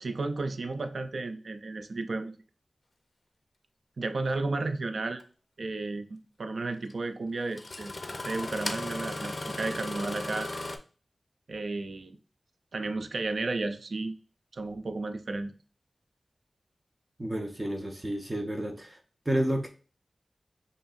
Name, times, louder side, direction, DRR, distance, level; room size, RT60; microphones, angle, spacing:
voice 1, 0.0-2.3 4.0-5.2 5.6-7.9 8.2-10.5 11.5-12.2 12.7-14.1 14.5-15.5, right 3 dB, 75° right, 8 dB, 0.4 m, -33 dB
Engine starting, 5.2-5.3 6.9-7.0 7.5-10.8, left 2 dB, 50° left, 0.5 m, -36 dB
voice 2, 17.2-19.0 19.3-19.7, right 1 dB, 30° right, 3 dB, 0.7 m, -30 dB
5.2 x 2.9 x 2.4 m, 0.37 s
wide cardioid pair, 65°, 0 cm